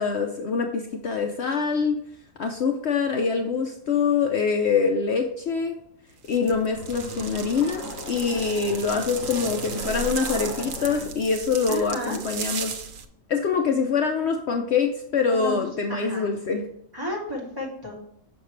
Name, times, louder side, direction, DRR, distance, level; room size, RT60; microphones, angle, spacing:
voice 1, 0.0-2.0 2.4-5.8 6.3-7.8 8.1-12.7 13.3-16.6, left 5 dB, 60° left, 3 dB, 0.9 m, -24 dB
sound 1, 6.2-13.1, right 6 dB, 75° right, 1.1 m, -36 dB
sound 2, 6.5-11.2, left 2 dB, 75° left, 1.3 m, -37 dB
voice 2, 11.7-12.2 15.3-15.6 15.9-16.3 16.9-17.9, left 1 dB, 15° right, -4 dB, 2.2 m, -32 dB
6.5 x 5.8 x 3.1 m, 0.76 s
omnidirectional pair, 1.4 m